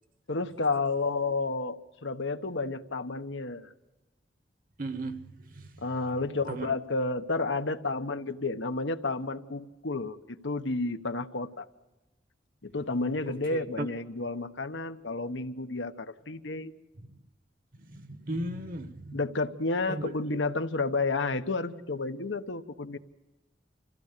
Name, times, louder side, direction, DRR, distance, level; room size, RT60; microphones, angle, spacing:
voice 1, 0.3-3.7 5.8-11.7 12.6-16.7 19.1-23.0, left 3 dB, 90° left, 9 dB, 1.1 m, -31 dB
voice 2, 4.8-5.3 6.5-6.7 13.3-13.9 17.9-19.2 19.9-20.1, right 2 dB, 45° right, 10 dB, 1.1 m, -35 dB
26.5 x 16.0 x 6.7 m, 1.1 s
head